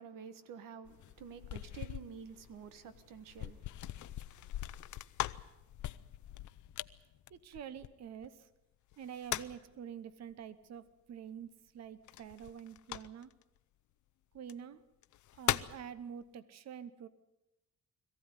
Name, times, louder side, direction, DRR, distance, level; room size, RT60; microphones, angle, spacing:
voice 1, 0.0-4.9, right 7 dB, 85° right, 1.5 m, -51 dB
sound 1, 0.9-8.3 8.9-9.7 12.1-13.4 14.4-14.5 15.0-15.8, left 14 dB, 65° left, 0.7 m, -41 dB
voice 2, 7.3-8.5 9.0-13.3 14.3-14.8 15.3-17.1, right 8 dB, 55° right, 1.0 m, -47 dB
22.0 x 15.0 x 9.7 m
cardioid pair, 135°, 32 cm